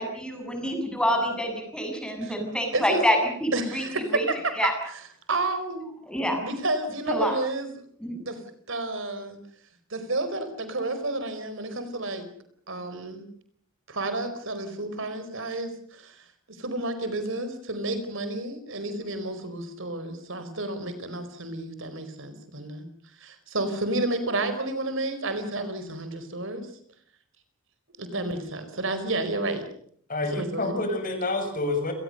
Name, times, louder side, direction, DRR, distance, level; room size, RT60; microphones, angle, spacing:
voice 1, 0.0-3.9 4.1-4.3 4.6-4.7 6.1-6.4 7.1-7.3 8.0-8.3, equal, 5° left, 4 dB, 7.4 m, -27 dB
voice 2, 3.5-5.0 5.3-5.9 6.4-7.8 8.2-8.4 8.7-9.4 9.9-12.2 12.7-13.2 13.9-16.2 16.6-22.8 23.2-26.6 28.0-29.6 30.3-30.8, right 2 dB, 65° right, 10 dB, 4.7 m, -31 dB
voice 3, 30.1-31.9, left 2 dB, 40° left, 6 dB, 6.6 m, -28 dB
29.5 x 20.0 x 6.7 m, 0.62 s
head